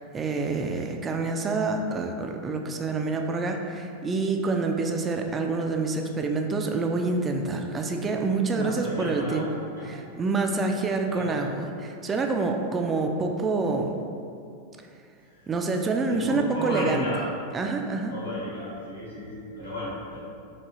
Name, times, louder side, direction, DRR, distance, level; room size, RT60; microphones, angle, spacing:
voice 1, 0.0-9.4 9.9-13.9 15.5-17.0 17.5-18.1, right 3 dB, 20° right, 3 dB, 0.3 m, -27 dB
voice 2, 8.5-10.0 11.1-11.3 15.2-15.5 16.1-17.3 18.1-20.2, equal, 90° left, -10 dB, 1.4 m, -34 dB
4.6 x 2.9 x 2.8 m, 2.4 s
figure-of-eight pair, 90°, 0 cm